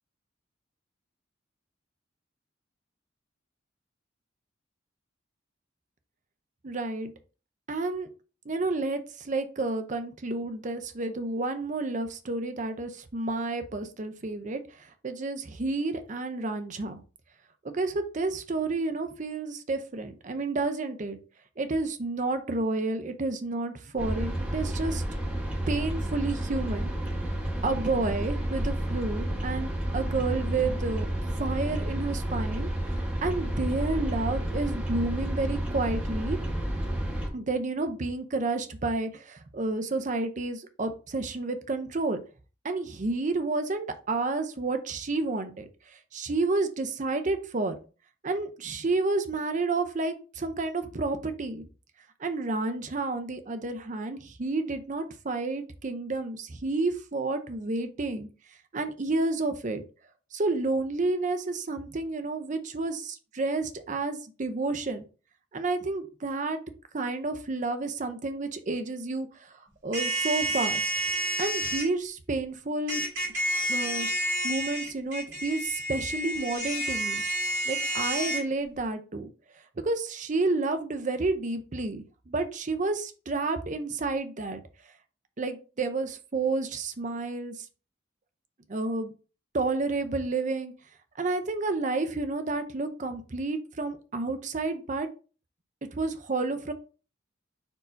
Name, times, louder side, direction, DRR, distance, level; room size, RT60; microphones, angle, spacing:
voice 1, 6.6-7.1 7.7-8.1 8.5-14.6 15.0-17.0 17.6-21.2 21.6-25.0 25.7-26.9 27.6-31.1 31.4-32.7 33.2-36.4 37.3-42.2 42.6-45.7 46.1-47.7 48.2-51.6 52.2-58.3 58.7-59.8 60.3-65.0 65.5-66.6 66.9-69.5 69.8-70.9 71.4-73.0 73.7-74.1 74.4-77.2 77.7-79.3 79.8-84.6 85.4-87.5 88.7-89.1 89.5-90.7 91.2-95.1 95.9-96.7, right 3 dB, 40° right, 8 dB, 0.6 m, -30 dB
sound 1, 24.0-37.3, right 1 dB, 5° right, 1.0 m, -30 dB
sound 2, 69.9-71.9 72.9-78.4, right 1 dB, 85° right, 1.8 m, -30 dB
4.4 x 2.7 x 4.4 m, 0.35 s
head